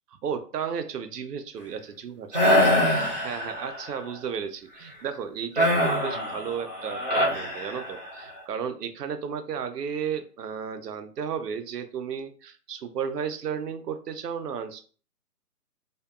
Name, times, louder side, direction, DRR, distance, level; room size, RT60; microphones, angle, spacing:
voice 1, 0.1-14.8, right 7 dB, 80° right, 9 dB, 0.6 m, -34 dB
sound 1, 2.3-3.9 5.6-8.2, equal, 30° right, 0.6 m, -24 dB
2.7 x 2.2 x 2.2 m, 0.41 s
hypercardioid pair, 180°, 48 cm